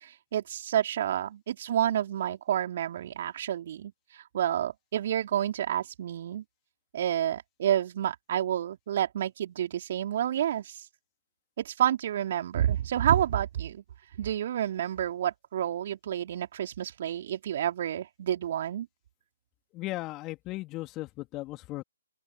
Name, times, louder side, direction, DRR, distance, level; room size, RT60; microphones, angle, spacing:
voice 1, 0.0-3.9 4.3-6.4 6.9-10.8 11.6-13.8 14.2-18.9, right 10 dB, 40° right, 3.9 m, -29 dB
voice 2, 19.7-21.8, left 19 dB, 20° left, 3.0 m, -36 dB
open air
figure-of-eight pair, 140°, 0 cm